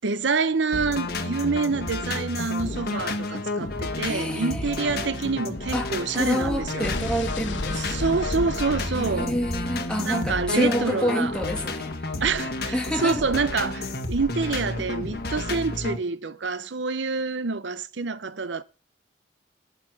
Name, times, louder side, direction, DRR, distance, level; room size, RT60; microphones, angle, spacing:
voice 1, 0.0-6.9 7.8-9.3 10.0-11.3 12.2-18.6, right 4 dB, 75° right, 0.7 m, -27 dB
sound 1, 0.7-16.0, left 2 dB, 55° left, 1.6 m, -31 dB
voice 2, 4.0-5.2 5.7-8.1 8.9-12.2 12.7-13.3, equal, 5° left, 2.0 m, -28 dB
Explosion, 6.8-10.9, left 2 dB, 90° left, 1.3 m, -34 dB
11.5 x 10.5 x 6.1 m
head